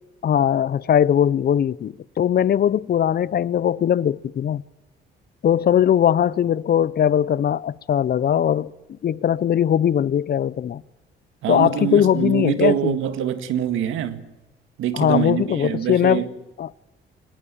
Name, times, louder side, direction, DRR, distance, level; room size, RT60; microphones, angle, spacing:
voice 1, 0.2-4.6 5.4-8.7 9.0-10.8 11.5-13.0 14.9-16.3 16.6-16.7, left 9 dB, 50° left, 0.7 m, -20 dB
voice 2, 11.4-14.3 14.8-16.3, right 10 dB, 85° right, 1.9 m, -24 dB
23.5 x 19.0 x 8.9 m
cardioid pair, 90°, 20 cm